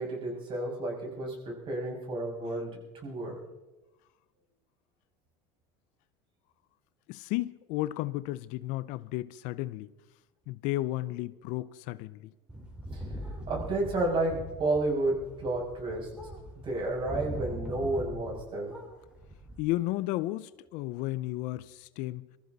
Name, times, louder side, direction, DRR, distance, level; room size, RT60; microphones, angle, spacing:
voice 1, 0.0-3.4 12.9-13.0 13.5-16.1 16.6-18.8, right 2 dB, 40° right, 6.7 m, -31 dB
voice 2, 7.1-9.9 10.5-12.3 19.6-22.3, left 17 dB, 65° left, 0.7 m, -33 dB
sound 1, 12.5-18.4 18.7-19.6, equal, 5° right, 4.4 m, -41 dB
24.0 x 14.5 x 4.1 m
supercardioid pair, 120°, 14 cm